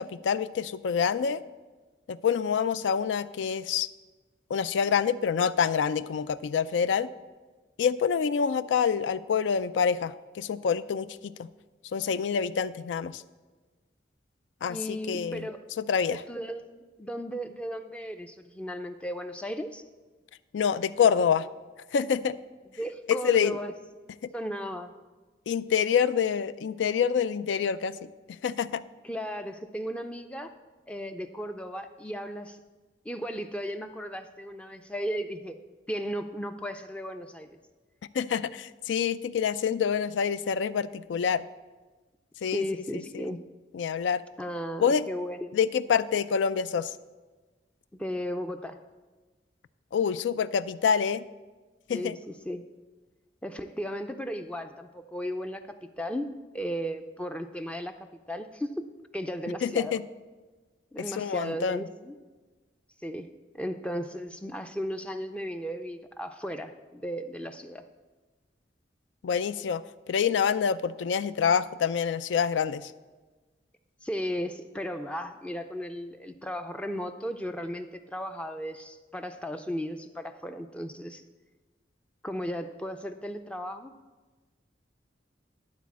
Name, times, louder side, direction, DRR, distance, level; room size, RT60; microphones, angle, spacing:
voice 1, 0.0-1.4 2.1-3.9 4.5-7.1 7.8-11.5 11.9-13.2 14.6-15.5 15.8-16.2 20.5-21.5 21.9-22.4 23.1-23.6 25.5-28.8 38.1-41.5 42.4-43.3 43.7-44.2 44.8-45.1 45.5-46.9 49.9-51.2 51.9-52.2 59.6-60.0 61.1-61.9 69.2-72.9, left 7 dB, 90° left, 16 dB, 0.3 m, -27 dB
voice 2, 14.7-15.6 16.1-19.8 22.8-23.7 24.3-24.9 29.0-30.5 30.9-32.6 33.1-35.6 35.9-37.5 42.5-43.4 44.4-45.6 48.0-48.8 51.9-52.6 53.4-58.0 58.3-58.9 59.1-60.0 60.9-62.2 63.0-67.9 74.0-81.2 82.2-83.9, equal, 5° left, 8 dB, 0.3 m, -35 dB
11.5 x 4.2 x 7.2 m, 1.3 s
head